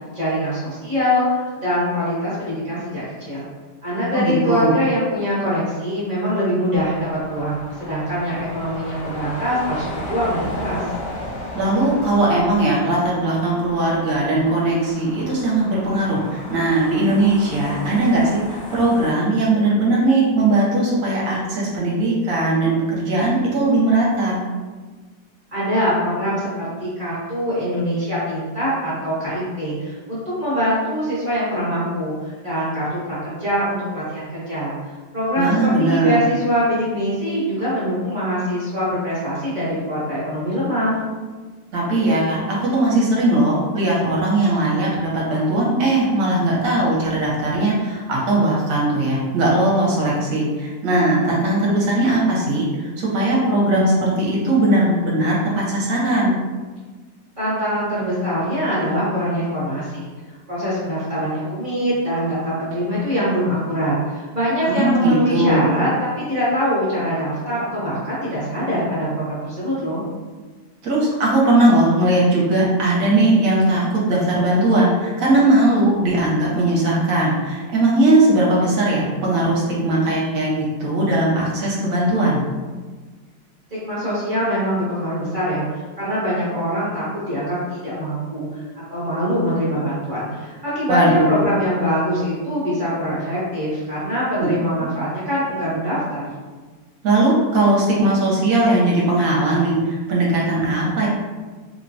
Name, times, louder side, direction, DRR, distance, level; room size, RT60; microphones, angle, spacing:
voice 1, 0.1-3.5 3.8-10.8 25.5-34.7 35.1-41.0 57.4-60.1 60.5-65.9 66.2-70.0 83.8-96.3, equal, 40° right, -9 dB, 0.7 m, -23 dB
voice 2, 4.1-4.8 11.5-24.4 35.4-36.2 41.7-56.3 64.6-65.7 70.8-82.4 90.9-91.5 94.4-94.5 97.0-101.1, right 2 dB, 60° right, -4 dB, 1.0 m, -19 dB
sound 1, 6.7-19.1, left 1 dB, 70° left, 0.8 m, -35 dB
3.0 x 2.2 x 2.6 m, 1.4 s
omnidirectional pair, 1.9 m